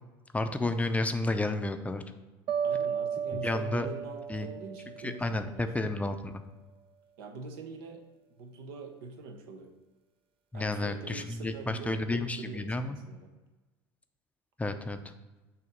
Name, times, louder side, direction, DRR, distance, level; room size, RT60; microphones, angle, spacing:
voice 1, 0.3-2.0 3.4-3.9 4.3-4.5 5.0-6.3 10.5-13.0 14.6-15.0, left 2 dB, 10° left, 8 dB, 0.5 m, -31 dB
sound 1, 2.5-5.6, right 7 dB, 50° right, 0.4 m, -34 dB
voice 2, 2.6-5.7 7.2-8.0 8.4-9.7 10.5-13.3, right 3 dB, 75° right, 5 dB, 0.9 m, -43 dB
6.6 x 2.8 x 5.2 m, 1.2 s
hypercardioid pair, 75°, 12 cm